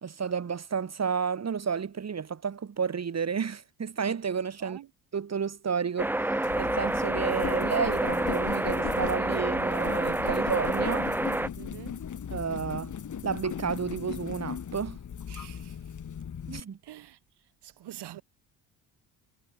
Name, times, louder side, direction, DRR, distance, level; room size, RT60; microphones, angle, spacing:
voice 1, 0.0-4.8 5.1-11.1 12.3-12.9 13.2-15.0 16.5-16.8, right 6 dB, 35° right, 2.6 m, -31 dB
sound 1, 6.0-11.5, right 1 dB, 5° right, 0.7 m, -28 dB
sound 2, 6.4-16.6, left 8 dB, 45° left, 3.2 m, -38 dB
voice 2, 11.6-12.1 15.3-15.8 16.8-17.2 17.6-18.2, right 13 dB, 65° right, 6.8 m, -45 dB
supercardioid pair, 70°, 43 cm